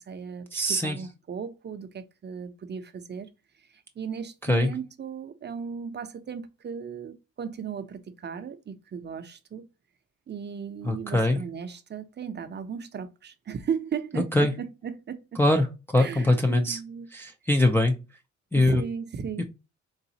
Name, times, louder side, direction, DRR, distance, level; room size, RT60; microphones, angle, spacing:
voice 1, 0.0-3.3 3.7-9.7 10.3-15.4 16.0-17.1 18.5-19.4, right 6 dB, 35° right, 0.6 m, -36 dB
voice 2, 0.5-1.0 4.5-4.7 10.9-11.4 14.2-14.5 15.4-15.7 15.9-16.8 17.1-17.9 18.5-18.8 19.4-19.5, left 1 dB, 5° left, 0.4 m, -22 dB
3.9 x 2.4 x 2.7 m
cardioid pair, 90°, 30 cm